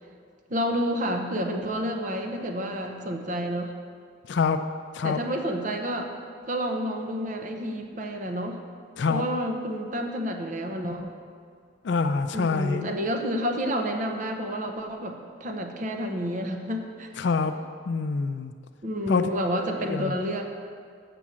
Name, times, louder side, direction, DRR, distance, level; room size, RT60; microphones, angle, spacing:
voice 1, 0.5-3.7 5.0-6.1 6.5-8.6 9.1-11.1 12.3-17.1 18.8-20.5, equal, 45° right, 4 dB, 0.8 m, -29 dB
voice 2, 4.3-4.6 4.9-5.2 9.0-9.2 11.8-12.9 17.2-17.6 17.9-18.5 19.1-19.3 19.7-20.1, left 4 dB, 65° left, 9 dB, 0.4 m, -26 dB
6.9 x 6.2 x 7.4 m, 2.1 s
head